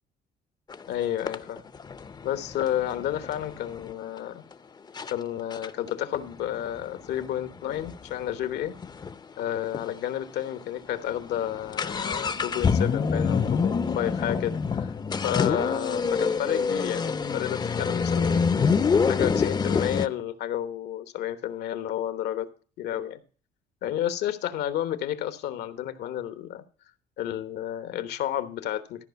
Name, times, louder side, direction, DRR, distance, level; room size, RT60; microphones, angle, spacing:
sound 1, 0.7-0.8 1.3-3.9 4.5-4.6 5.0-5.1 5.5-9.2 9.5-9.6 9.7-9.9 10.5-10.6 10.9-20.1, left 5 dB, 25° left, 0.6 m, -26 dB
voice 1, 0.9-1.6 2.2-4.4 5.1-8.7 9.4-14.9 15.2-18.4 18.9-22.5 22.8-23.2 23.8-26.6 27.2-29.0, left 11 dB, 75° left, 1.1 m, -31 dB
13.5 x 5.0 x 6.8 m
cardioid pair, 110°, 17 cm